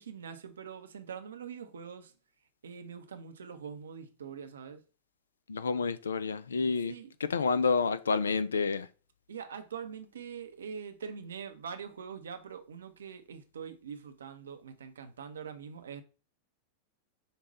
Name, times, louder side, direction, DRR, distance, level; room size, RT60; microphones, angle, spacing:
voice 1, 0.0-2.1 2.6-4.8 6.9-7.1 9.3-16.0, right 7 dB, 65° right, 0.6 m, -43 dB
voice 2, 5.5-6.9 7.2-8.9, left 5 dB, 70° left, 0.3 m, -29 dB
5.3 x 2.3 x 4.0 m
figure-of-eight pair, 90°, 0 cm